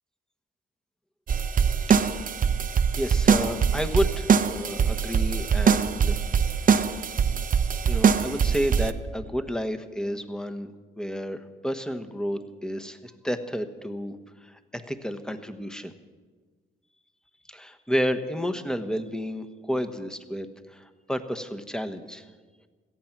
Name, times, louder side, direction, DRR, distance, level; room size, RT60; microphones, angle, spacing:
sound 1, 1.3-8.9, right 6 dB, 45° right, 0.8 m, -23 dB
voice 1, 3.0-6.2 7.9-10.7 11.0-14.1 14.7-15.9 17.5-20.5 20.7-22.2, equal, 5° left, 8 dB, 1.2 m, -31 dB
17.5 x 14.0 x 6.0 m, 1.4 s
cardioid pair, 90°, 20 cm